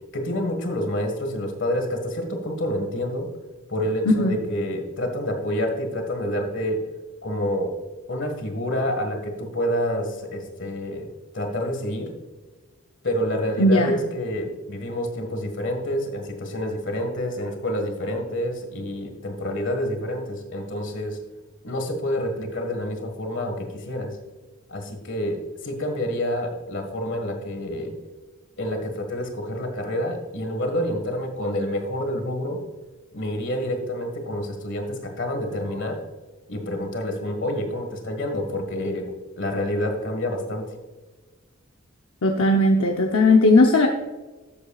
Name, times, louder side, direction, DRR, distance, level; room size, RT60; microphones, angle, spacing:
voice 1, 0.1-3.3 3.7-6.9 7.2-7.8 8.1-11.1 11.3-12.1 13.0-21.2 21.6-24.2 24.7-28.0 28.6-32.6 33.1-36.0 36.5-40.7, equal, 55° left, 5 dB, 1.7 m, -28 dB
voice 2, 13.6-14.0 42.2-43.9, left 2 dB, 75° left, 2 dB, 0.8 m, -17 dB
12.5 x 8.0 x 2.4 m, 1.2 s
head